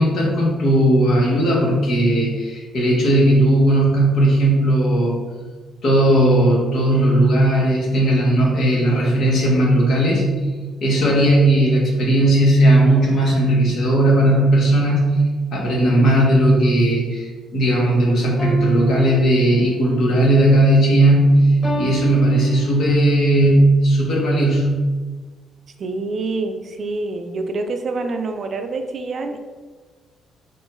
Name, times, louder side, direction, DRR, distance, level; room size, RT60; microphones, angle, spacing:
voice 1, 0.0-5.2 5.8-10.2 10.8-15.1 15.5-21.5 21.8-24.7, right 1 dB, 65° left, -3 dB, 1.3 m, -16 dB
sound 1, 18.4-19.9 21.6-23.1, right 1 dB, 25° left, 0.9 m, -28 dB
voice 2, 25.8-29.4, right 3 dB, 55° right, 6 dB, 0.4 m, -26 dB
3.7 x 2.2 x 4.1 m, 1.4 s
cardioid pair, 90°, 0 cm